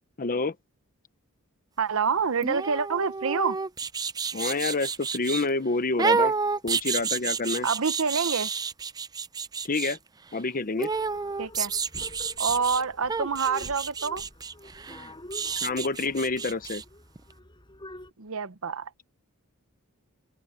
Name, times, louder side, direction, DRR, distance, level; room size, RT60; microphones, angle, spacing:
voice 1, 0.2-0.5 4.3-6.3 6.6-7.7 9.6-10.0 10.3-10.9 15.5-16.8, left 3 dB, 40° left, 0.9 m, -28 dB
voice 2, 1.8-3.6 7.6-8.5 11.4-11.7 12.4-14.2 18.2-19.1, right 5 dB, 70° right, 0.9 m, -27 dB
sound 1, 2.4-5.5 6.0-10.0 10.8-12.8 13.1-16.8 17.2-17.3, right 5 dB, 20° right, 0.4 m, -30 dB
sound 2, 10.9-18.1, left 1 dB, 20° left, 5.8 m, -47 dB
head